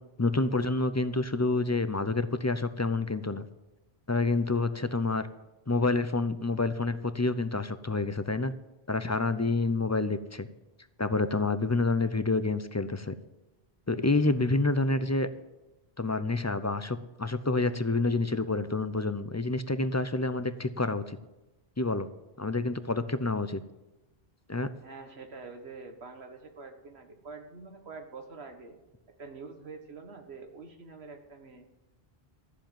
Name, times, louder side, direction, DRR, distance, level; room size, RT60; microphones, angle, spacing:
voice 1, 0.2-3.5 4.1-5.3 5.7-8.5 8.9-10.5 11.0-13.1 13.9-15.3 16.0-21.2 21.8-22.1 22.4-23.6 24.5-24.7, left 3 dB, 20° left, 12 dB, 0.5 m, -28 dB
voice 2, 24.8-28.8 29.2-31.6, right 4 dB, 90° right, 6 dB, 1.7 m, -46 dB
13.0 x 7.4 x 9.1 m, 1.0 s
omnidirectional pair, 1.0 m